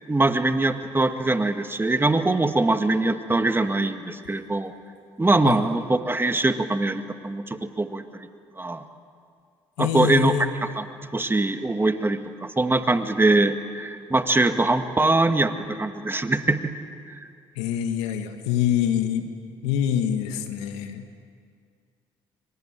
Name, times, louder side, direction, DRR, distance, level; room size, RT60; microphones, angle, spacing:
voice 1, 0.1-4.7 5.2-8.3 8.6-8.8 9.8-10.5 10.8-16.7 17.1-17.2, right 2 dB, 20° right, 7 dB, 2.0 m, -23 dB
voice 2, 9.8-10.5 17.5-19.3 19.6-21.0, left 10 dB, 85° left, 7 dB, 1.7 m, -25 dB
26.0 x 24.5 x 9.0 m, 2.2 s
hypercardioid pair, 60°, 11 cm